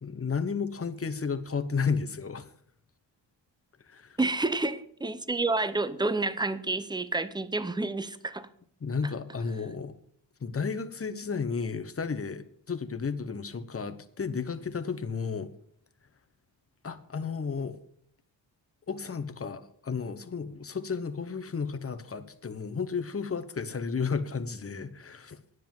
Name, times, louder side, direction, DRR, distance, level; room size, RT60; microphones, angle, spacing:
voice 1, 0.0-2.5 3.9-4.2 8.8-10.0 10.4-15.5 16.8-17.8 18.9-25.4, left 5 dB, 30° left, 9 dB, 1.0 m, -33 dB
voice 2, 4.2-8.5, right 2 dB, 10° right, 14 dB, 0.7 m, -29 dB
10.0 x 7.7 x 7.2 m, 0.64 s
wide cardioid pair, 100°, 45 cm